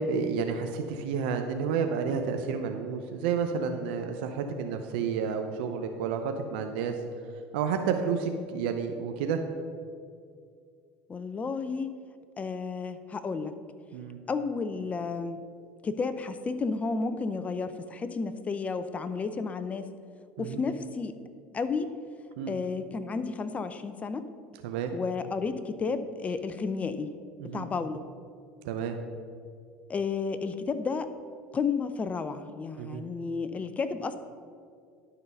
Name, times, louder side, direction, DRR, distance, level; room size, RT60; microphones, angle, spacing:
voice 1, 0.0-7.0 7.5-9.4 13.9-14.2 20.4-20.6 22.4-22.6 24.6-24.9 27.4-27.7 28.6-29.0 32.8-33.0, right 6 dB, 80° right, 5 dB, 0.6 m, -30 dB
voice 2, 11.1-11.9 12.4-13.5 14.3-15.4 15.8-19.9 20.4-21.1 21.5-21.9 22.5-24.2 24.9-27.1 27.5-28.0 29.9-31.1 31.5-34.2, left 4 dB, 25° left, 11 dB, 0.6 m, -32 dB
11.5 x 3.9 x 5.4 m, 2.2 s
supercardioid pair, 90°, 5 cm